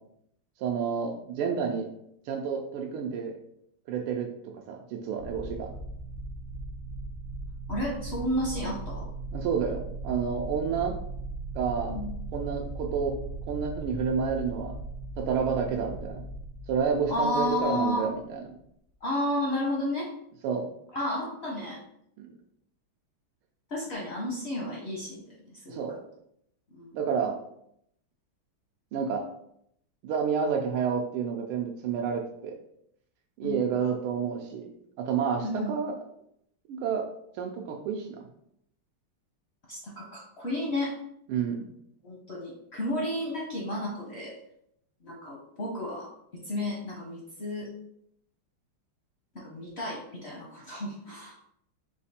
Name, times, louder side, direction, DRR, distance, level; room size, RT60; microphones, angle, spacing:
voice 1, 0.6-1.9 2.3-3.3 3.9-4.3 4.7-5.7 9.3-11.0 11.5-11.9 12.3-13.1 13.5-14.7 15.2-16.2 16.7-18.4 20.4-20.7 22.2-22.3 25.7-26.0 26.9-27.4 28.9-29.3 30.0-32.5 33.4-34.7 35.0-35.9 36.7-37.1 37.4-38.3 41.3-41.7, right 6 dB, 85° right, 1 dB, 1.5 m, -29 dB
sound 1, 5.2-18.2, right 2 dB, 65° right, 1.0 m, -38 dB
voice 2, 7.7-9.1 11.9-12.2 17.1-18.1 19.0-20.1 20.9-21.8 23.7-25.8 26.7-27.0 33.4-33.6 35.4-35.7 39.7-40.9 42.0-44.3 45.0-46.1 46.4-47.7 49.3-51.3, left 1 dB, 60° left, -3 dB, 0.7 m, -32 dB
5.0 x 2.5 x 4.1 m, 0.73 s
omnidirectional pair, 2.3 m